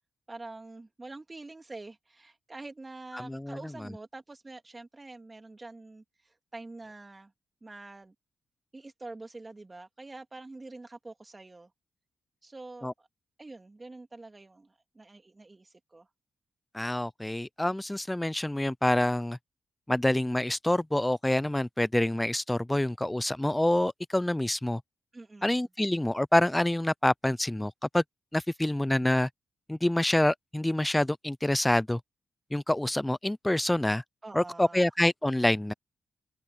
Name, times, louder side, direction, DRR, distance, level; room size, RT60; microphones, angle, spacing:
voice 1, 0.3-7.3 7.6-8.1 8.7-11.7 12.4-13.1 13.4-16.1 25.1-25.6 34.2-34.9, right 2 dB, 25° right, 2.9 m, -46 dB
voice 2, 3.1-3.6 12.8-12.9 16.7-19.4 19.9-24.8 25.4-28.0 28.3-29.3 29.7-32.0 32.5-34.0 34.3-35.7, left 1 dB, 10° left, 0.5 m, -27 dB
open air
cardioid pair, 65°, 0 cm